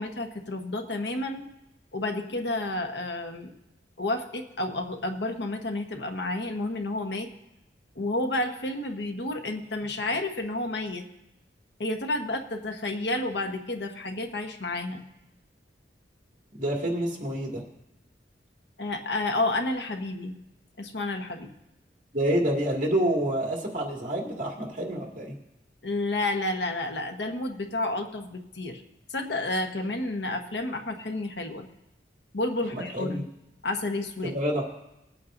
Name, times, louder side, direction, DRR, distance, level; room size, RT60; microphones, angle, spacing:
voice 1, 0.0-1.4 1.9-3.5 4.0-7.3 7.9-11.0 11.8-15.0 18.8-20.4 20.8-21.5 25.8-28.8 29.1-31.7 32.3-33.3 33.6-34.3, left 2 dB, 75° left, 4 dB, 1.2 m, -30 dB
voice 2, 16.6-17.6 22.1-25.3 32.7-33.2 34.2-34.6, right 1 dB, 45° right, -1 dB, 2.3 m, -28 dB
20.5 x 8.7 x 2.6 m, 0.90 s
head